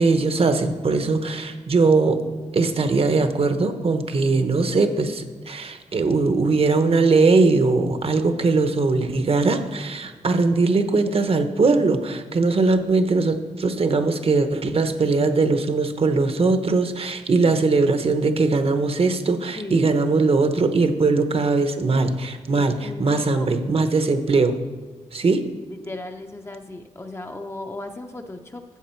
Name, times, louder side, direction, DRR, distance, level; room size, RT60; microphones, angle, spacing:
voice 1, 0.0-2.2 2.5-24.6 25.1-25.4, right 3 dB, 50° right, 8 dB, 0.9 m, -20 dB
voice 2, 19.5-19.9 22.5-23.9 25.7-28.6, left 2 dB, 20° left, 4 dB, 0.7 m, -36 dB
13.0 x 7.8 x 4.5 m, 1.4 s
wide cardioid pair, 115°, 13 cm